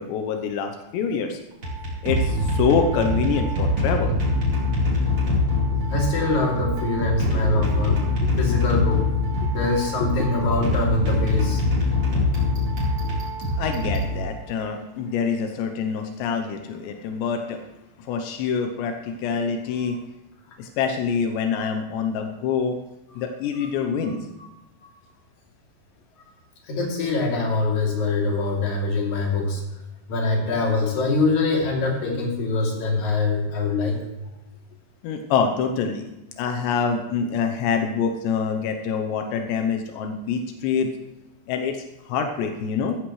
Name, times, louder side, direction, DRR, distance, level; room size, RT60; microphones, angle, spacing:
voice 1, 0.0-1.4 2.0-4.1 7.2-8.0 10.0-10.1 13.6-17.6 18.0-20.0 20.6-22.8 23.2-24.2 35.0-36.0 36.4-40.9 41.5-43.0, left 6 dB, 85° left, 5 dB, 3.1 m, -26 dB
sound 1, 1.5-14.7, left 2 dB, 30° right, 4.4 m, -24 dB
voice 2, 5.9-8.0 8.4-9.0 9.5-11.6 23.6-23.7 24.0-24.1 24.4-24.5 26.6-29.6 30.1-34.0, left 3 dB, 45° left, -2 dB, 3.9 m, -24 dB
14.5 x 14.5 x 3.2 m, 0.99 s
omnidirectional pair, 5.0 m